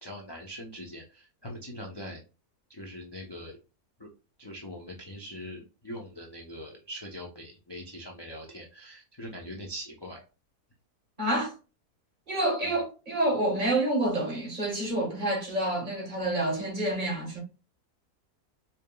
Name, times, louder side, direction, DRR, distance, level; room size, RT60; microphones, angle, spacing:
voice 1, 0.0-2.2 2.7-3.6 4.0-4.1 4.4-10.2 12.6-12.7, equal, 40° left, 0.3 m, -42 dB
voice 2, 11.2-11.5 12.3-17.4, right 1 dB, 35° right, 1.4 m, -28 dB
5.0 x 2.8 x 2.2 m
omnidirectional pair, 1.6 m